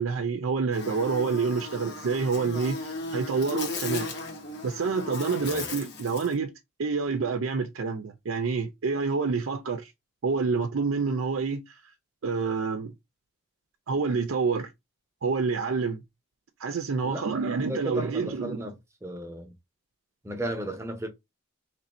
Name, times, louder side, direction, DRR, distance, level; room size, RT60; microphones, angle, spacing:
voice 1, 0.0-4.1 4.6-6.5 6.8-9.9 10.2-11.8 12.2-12.9 13.9-14.7 15.2-16.0 16.6-18.7, right 4 dB, 85° right, 0.5 m, -28 dB
Buzz, 0.7-6.3, left 3 dB, 55° left, 0.9 m, -36 dB
voice 2, 5.4-5.7 17.0-17.4 17.7-19.5 20.2-21.1, right 1 dB, 15° right, 0.7 m, -35 dB
3.2 x 2.6 x 4.2 m
head